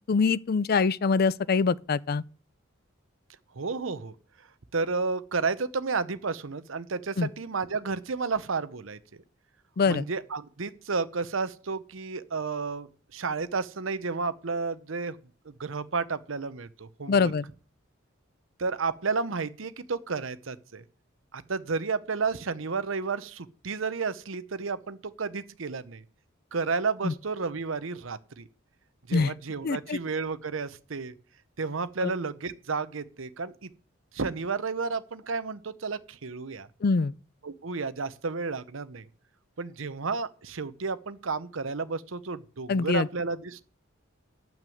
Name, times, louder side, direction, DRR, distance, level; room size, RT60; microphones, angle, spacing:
voice 1, 0.1-2.2 7.2-7.3 9.8-10.0 17.1-17.4 27.0-27.1 29.1-29.3 29.6-30.0 32.0-32.1 36.8-37.1 42.7-43.1, left 4 dB, 50° left, 0.4 m, -24 dB
voice 2, 3.6-4.1 4.7-9.0 9.9-15.2 15.4-17.3 18.6-20.8 21.3-26.0 26.5-28.5 29.1-31.1 31.6-33.7 34.1-36.7 37.4-39.1 39.6-43.6, right 4 dB, 75° right, 0.8 m, -32 dB
8.8 x 6.1 x 7.8 m
head